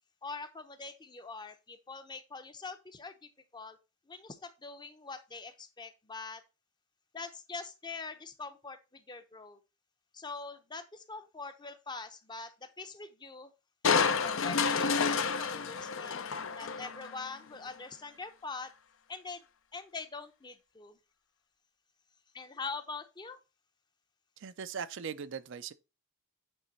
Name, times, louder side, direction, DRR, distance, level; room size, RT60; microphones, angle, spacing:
voice 1, 0.2-3.8 4.1-6.4 7.1-9.6 10.1-13.5 14.0-18.7 19.1-19.4 19.7-21.0 22.3-23.4, left 4 dB, 20° left, 0.7 m, -44 dB
Crushing, 13.8-17.2 17.7-17.8, left 5 dB, 65° left, 0.6 m, -30 dB
voice 2, 24.4-25.7, right 6 dB, 60° right, 0.5 m, -39 dB
8.7 x 3.3 x 4.0 m
head